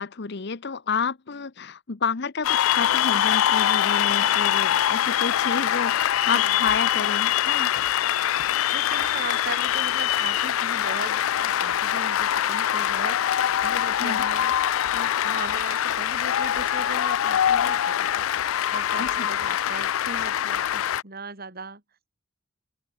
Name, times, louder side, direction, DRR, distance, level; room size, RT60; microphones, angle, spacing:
voice 1, 0.0-7.7 14.0-14.2 19.0-19.3, left 5 dB, 55° left, 0.8 m, -30 dB
Cheering / Applause, 2.4-21.0, left 11 dB, 85° left, 0.4 m, -23 dB
voice 2, 8.3-21.8, right 3 dB, 50° right, 4.1 m, -39 dB
open air
head